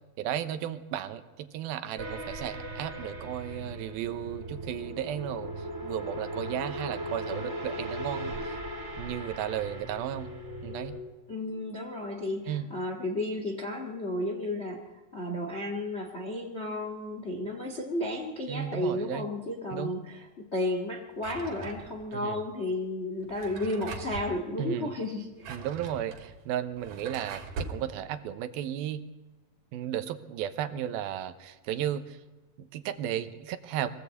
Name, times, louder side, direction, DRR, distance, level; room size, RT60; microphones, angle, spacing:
voice 1, 0.2-5.5 5.8-8.6 9.0-10.3 10.6-10.9 12.5-12.7 18.5-19.3 19.7-20.0 22.1-22.4 24.6-24.9 25.5-29.0 29.7-32.2 32.6-33.9, right 10 dB, 75° right, 10 dB, 2.7 m, -34 dB
sound 1, 2.0-11.0, right 1 dB, 20° right, 3.0 m, -38 dB
voice 2, 11.3-25.5, left 1 dB, 90° left, 2 dB, 0.5 m, -33 dB
Drawer open or close, 21.2-22.2 23.2-24.3 25.2-27.8, right 4 dB, 60° right, 3.4 m, -41 dB
23.0 x 16.5 x 8.4 m, 1.1 s
omnidirectional pair, 4.7 m